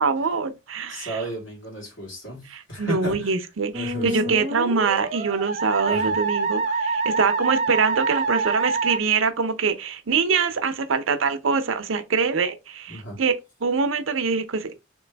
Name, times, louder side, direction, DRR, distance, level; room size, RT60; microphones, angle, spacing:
voice 1, 0.0-1.2 2.5-13.3 13.6-14.7, right 5 dB, 85° right, 0.6 m, -24 dB
voice 2, 0.9-3.3 3.7-4.3 5.8-6.1 12.9-13.2, right 1 dB, 75° left, 2.0 m, -33 dB
Musical instrument, 3.7-9.0, right 3 dB, 35° right, 0.8 m, -26 dB
3.3 x 3.0 x 3.3 m
head